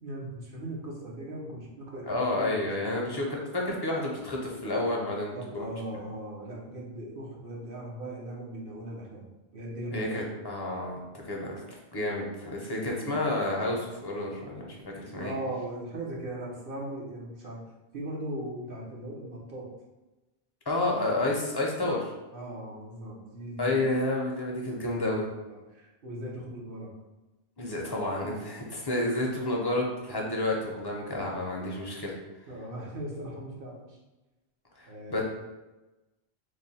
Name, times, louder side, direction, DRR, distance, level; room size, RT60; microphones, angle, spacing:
voice 1, 0.0-3.2 5.3-9.3 9.5-10.2 12.8-13.2 15.2-17.6 17.9-19.7 22.3-23.8 24.9-25.0 25.5-26.9 32.5-34.0 34.9-35.2, right 1 dB, 55° right, -3 dB, 1.0 m, -39 dB
voice 2, 2.1-5.7 9.9-11.0 11.3-11.6 11.9-15.3 20.7-22.1 23.6-25.2 27.6-32.2 34.8-35.2, left 2 dB, 25° left, -2 dB, 0.6 m, -30 dB
3.2 x 2.2 x 4.0 m, 1.1 s
omnidirectional pair, 1.1 m